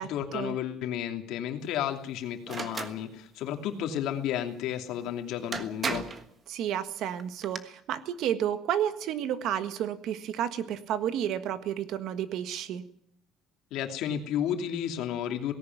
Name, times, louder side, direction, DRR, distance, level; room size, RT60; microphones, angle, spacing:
voice 1, 0.0-6.1 13.7-15.5, left 10 dB, 60° left, 5 dB, 2.6 m, -32 dB
sound 1, 2.5-3.0 5.0-5.1 5.5-6.3 7.2-7.6, right 4 dB, 20° right, 1.4 m, -34 dB
voice 2, 6.5-12.8, right 10 dB, 55° right, 11 dB, 1.5 m, -31 dB
18.5 x 17.0 x 9.4 m, 0.67 s
cardioid pair, 175°, 0 cm